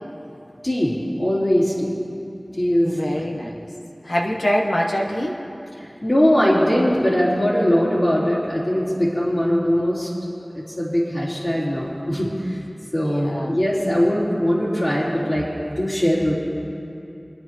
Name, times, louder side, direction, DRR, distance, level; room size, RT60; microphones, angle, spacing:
voice 1, 0.6-1.9 2.6-3.3 6.0-10.1 10.5-12.6 12.9-16.3, equal, 45° left, -9 dB, 3.7 m, -21 dB
voice 2, 2.8-3.7 4.0-5.4 13.0-13.6, equal, 75° left, -2 dB, 1.2 m, -24 dB
29.0 x 9.8 x 3.1 m, 2.8 s
wide cardioid pair, 45°, 0 cm